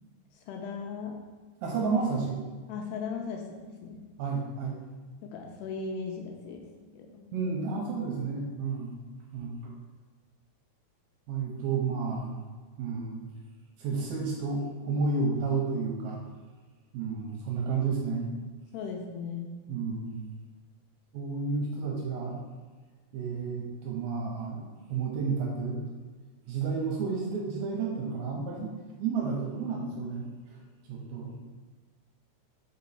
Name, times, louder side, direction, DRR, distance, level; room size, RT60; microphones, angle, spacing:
voice 1, 0.5-1.2 2.7-4.0 5.2-6.6 6.9-7.3 18.7-19.5, left 5 dB, 80° left, 1 dB, 2.6 m, -37 dB
voice 2, 1.6-2.4 4.2-4.8 7.3-8.9 9.3-9.7 11.3-12.3 12.8-13.2 13.8-16.2 16.9-18.3 19.7-20.2 21.1-22.4 23.1-25.9 26.5-28.7 29.0-30.6 30.9-31.3, right 4 dB, 75° right, -2 dB, 2.6 m, -31 dB
5.4 x 5.1 x 4.2 m, 1.4 s
omnidirectional pair, 5.0 m